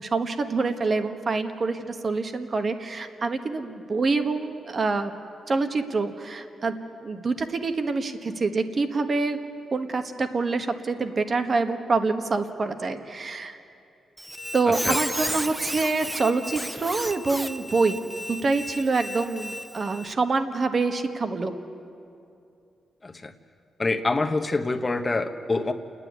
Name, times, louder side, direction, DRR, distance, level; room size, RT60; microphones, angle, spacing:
voice 1, 0.0-5.1 5.5-9.4 9.7-13.6 14.5-21.5, right 3 dB, 45° right, 8 dB, 1.4 m, -26 dB
Squeak, 14.2-20.1, equal, 5° right, 0.9 m, -33 dB
voice 2, 14.7-15.0 23.0-23.3 23.8-25.7, left 3 dB, 30° left, 6 dB, 1.3 m, -26 dB
29.0 x 10.0 x 9.6 m, 2.6 s
cardioid pair, 75°, 0 cm